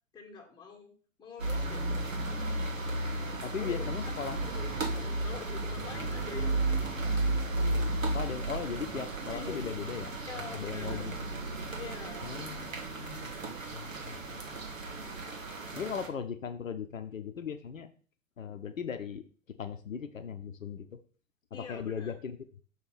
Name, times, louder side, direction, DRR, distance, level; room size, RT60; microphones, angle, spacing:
voice 1, 0.1-0.9 1.2-2.5 3.5-3.9 4.3-7.2 9.3-9.7 10.3-11.1 11.7-12.3 21.5-22.1, left 5 dB, 10° left, 0 dB, 1.6 m, -46 dB
sound 1, 1.4-16.1, right 2 dB, 80° right, 1.6 m, -34 dB
voice 2, 3.4-4.4 8.1-10.1 10.5-11.1 12.2-14.4 15.7-17.9 18.4-21.0 21.5-22.4, left 7 dB, 80° left, 8 dB, 0.8 m, -38 dB
6.2 x 3.5 x 5.9 m, 0.42 s
figure-of-eight pair, 100°, 39 cm